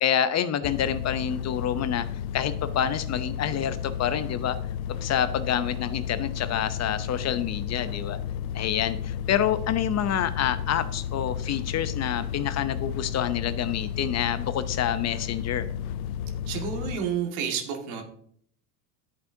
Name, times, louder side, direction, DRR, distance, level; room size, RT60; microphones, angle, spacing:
voice 1, 0.0-2.0 2.3-4.6 5.0-8.2 8.5-15.6, left 9 dB, 35° left, 12 dB, 0.7 m, -27 dB
sound 1, 0.6-17.0, left 9 dB, 75° left, 0.6 m, -33 dB
voice 2, 16.5-18.0, right 7 dB, 70° right, 3 dB, 2.1 m, -30 dB
11.0 x 8.1 x 2.8 m, 0.62 s
hypercardioid pair, 85°, 45 cm